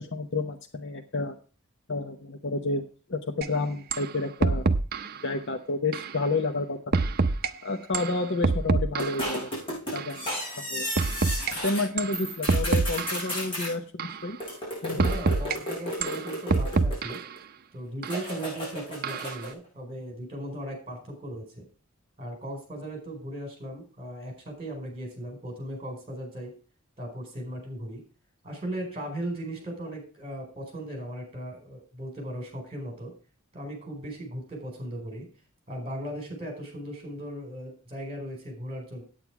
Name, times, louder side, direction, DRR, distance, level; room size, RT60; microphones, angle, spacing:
voice 1, 0.0-1.4 1.9-2.8 3.1-4.7 5.2-6.8 7.6-9.5 9.9-10.3 10.6-10.9 11.6-14.4 14.8-15.1, left 3 dB, 55° left, 5 dB, 0.9 m, -30 dB
sound 1, 3.4-3.5 3.9-4.1 4.4-5.2 5.9-6.1 6.9-7.5 7.9-9.3 10.0-10.1 11.0-11.5 12.0-12.2 12.5-13.3 14.0-14.2 15.0-15.6 16.0-17.3 18.0-18.2 19.0-19.4, right 3 dB, 45° right, 0.6 m, -26 dB
sound 2, 9.0-11.8 12.1-13.7 14.4-17.4 18.0-19.5, equal, 25° left, 5.9 m, -34 dB
voice 2, 14.9-17.2 17.7-21.7 22.2-26.5 27.0-28.0 28.4-33.1 33.5-35.3 35.7-39.0, right 1 dB, 25° right, 2 dB, 4.4 m, -37 dB
9.1 x 8.8 x 4.8 m, 0.36 s
head